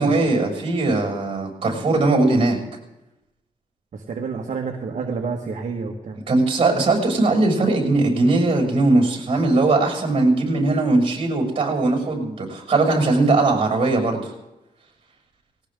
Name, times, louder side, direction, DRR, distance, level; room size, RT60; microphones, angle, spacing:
voice 1, 0.0-2.6 6.3-14.3, right 2 dB, 40° right, 2 dB, 7.2 m, -19 dB
voice 2, 3.9-6.2, right 5 dB, 60° right, 1 dB, 1.8 m, -29 dB
19.5 x 18.5 x 3.9 m, 0.93 s
wide cardioid pair, 120°, 14 cm